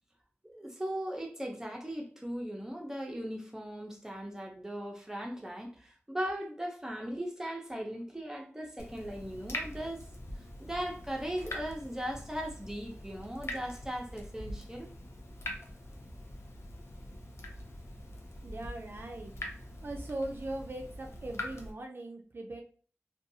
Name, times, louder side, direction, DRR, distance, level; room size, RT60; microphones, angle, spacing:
voice 1, 0.5-10.1 10.6-14.9, equal, 10° right, 0.6 m, -38 dB
Water tap faucet / Drip, 8.8-21.7, left 1 dB, 70° left, 0.6 m, -44 dB
voice 2, 18.4-19.3 19.8-22.6, right 2 dB, 50° right, 0.3 m, -40 dB
2.5 x 2.3 x 2.7 m
wide cardioid pair, 65°, 5 cm